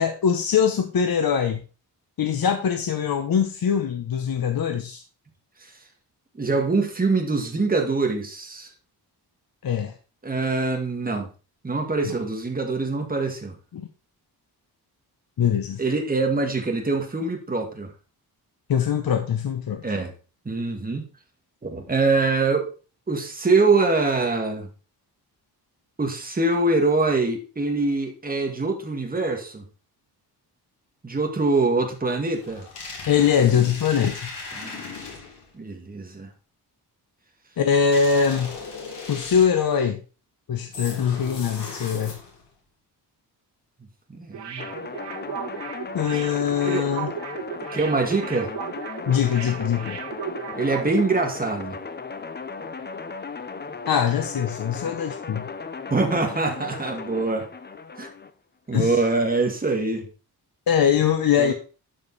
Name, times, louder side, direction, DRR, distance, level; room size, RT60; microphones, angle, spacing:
voice 1, 0.0-1.6 2.2-5.0 9.6-9.9 12.0-12.1 13.7-13.9 15.4-15.8 18.7-19.8 33.1-34.3 37.6-38.6 39.1-40.0 40.5-42.2 45.9-47.1 49.1-50.0 53.9-55.5 58.7-59.0 60.7-61.5, left 7 dB, 55° left, 6 dB, 1.0 m, -22 dB
voice 2, 6.4-8.7 10.2-11.3 11.6-13.5 15.8-17.9 19.8-20.1 20.5-21.1 21.6-22.7 23.1-24.7 26.0-29.6 31.0-32.6 34.6-34.8 35.5-36.3 44.1-44.7 46.6-46.9 47.7-48.5 50.6-51.8 55.9-57.5 58.0-58.1 58.7-60.0 61.4-61.5, right 3 dB, 20° right, 3 dB, 1.8 m, -24 dB
sound 1, 32.4-35.5 37.9-39.7 40.7-42.5, left 4 dB, 85° left, 3.5 m, -37 dB
sound 2, 44.3-50.9 51.2-51.3, right 8 dB, 85° right, 1.4 m, -36 dB
sound 3, 44.6-58.3, left 4 dB, 25° left, 0.7 m, -36 dB
12.0 x 5.3 x 4.0 m, 0.35 s
wide cardioid pair, 145°, 41 cm